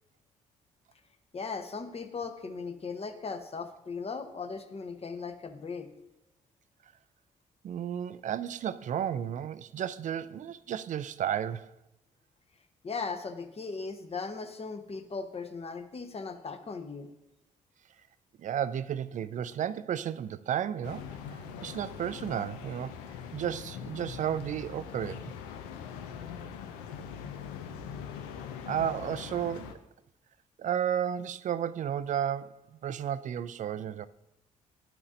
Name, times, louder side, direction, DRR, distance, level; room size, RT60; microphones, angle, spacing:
voice 1, 1.3-5.9 12.8-17.1, left 4 dB, 40° left, 1.0 m, -38 dB
voice 2, 7.6-11.8 18.4-23.0 23.3-25.3 28.7-29.8 30.6-34.1, right 9 dB, 50° right, 0.4 m, -33 dB
sound 1, 20.8-29.7, left 7 dB, 80° left, 0.5 m, -42 dB
12.0 x 5.9 x 2.6 m
hypercardioid pair, 45°, 16 cm